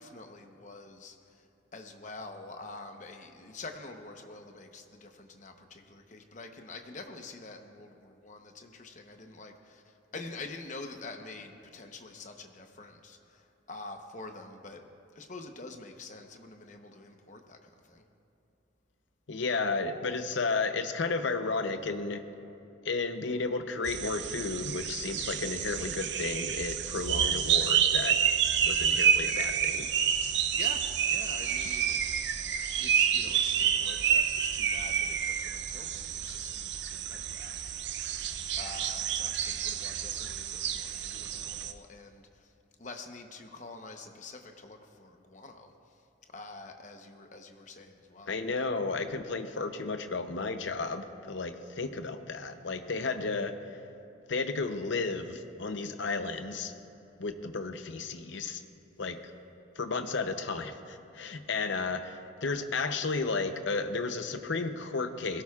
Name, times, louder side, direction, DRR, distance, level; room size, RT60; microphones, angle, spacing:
voice 1, 0.0-1.5 1.7-14.8 15.1-18.0 30.5-32.2 32.8-38.1 38.6-42.5 42.8-46.0 46.3-48.4, left 3 dB, 40° left, 4 dB, 0.9 m, -46 dB
voice 2, 19.3-22.2 22.8-28.2 28.6-29.9 48.3-53.6 54.3-56.7 57.2-58.6 59.0-59.2 59.8-65.4, left 4 dB, 70° left, 9 dB, 0.7 m, -33 dB
sound 1, 23.8-41.7, right 8 dB, 60° right, 0.5 m, -29 dB
21.0 x 17.0 x 2.4 m, 2.9 s
head